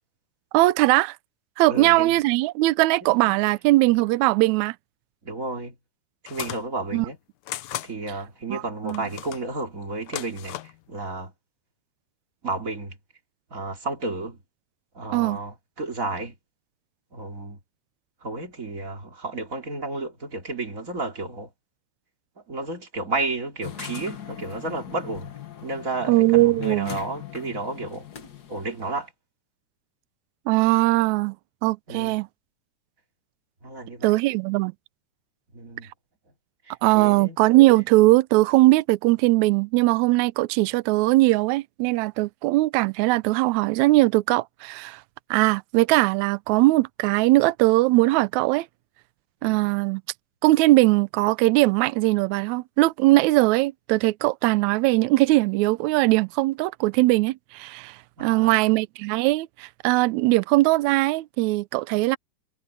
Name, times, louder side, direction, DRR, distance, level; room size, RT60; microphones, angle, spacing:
voice 1, 0.5-1.2 1.6-4.8 6.9-7.1 8.5-9.1 15.1-15.4 26.1-26.9 30.5-31.4 31.6-32.3 34.0-34.7 36.8-45.0 45.3-48.7 49.4-50.0 50.4-62.2, right 20 dB, 80° right, 1.9 m, -20 dB
voice 2, 1.6-2.2 3.0-3.4 5.2-5.7 6.2-7.2 7.8-10.6 10.9-11.3 12.4-12.9 13.5-14.4 14.9-16.3 17.1-17.6 18.2-21.5 22.5-25.3 25.6-28.1 28.5-29.1 31.9-32.2 33.6-34.2 35.5-35.9 36.7-37.4 49.4-49.7 58.2-58.6, right 2 dB, 25° right, 3.1 m, -32 dB
sound 1, 6.3-6.7 7.5-7.9 8.9-9.5 10.0-10.8, left 14 dB, 75° left, 2.1 m, -35 dB
sound 2, 23.6-28.9, left 10 dB, 50° left, 1.3 m, -40 dB
omnidirectional pair, 3.5 m